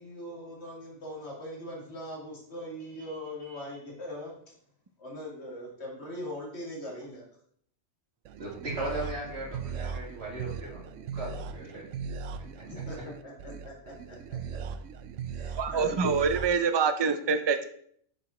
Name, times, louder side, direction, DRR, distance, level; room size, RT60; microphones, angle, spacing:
voice 1, 0.0-4.3 5.0-7.2 12.6-14.6 15.3-16.2, left 1 dB, 60° left, -2 dB, 2.3 m, -41 dB
voice 2, 8.3-11.8 12.6-12.7, right 1 dB, 60° right, -5 dB, 2.9 m, -37 dB
sound 1, 8.3-16.5, right 6 dB, 80° right, 0.9 m, -38 dB
voice 3, 15.6-17.6, right 5 dB, 40° right, 9 dB, 0.3 m, -25 dB
7.7 x 4.9 x 4.2 m, 0.63 s
omnidirectional pair, 1.3 m